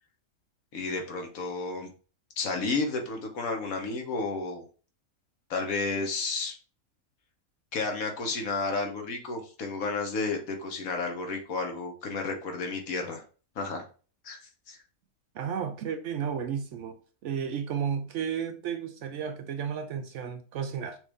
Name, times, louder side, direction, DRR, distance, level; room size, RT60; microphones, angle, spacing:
voice 1, 0.7-1.9 2.4-4.6 5.5-6.6 7.7-13.2 13.5-13.9 14.2-14.8, left 3 dB, 70° left, 4 dB, 1.4 m, -32 dB
voice 2, 15.3-21.0, right 7 dB, 65° right, 7 dB, 0.8 m, -33 dB
6.0 x 2.6 x 3.4 m, 0.38 s
omnidirectional pair, 1.5 m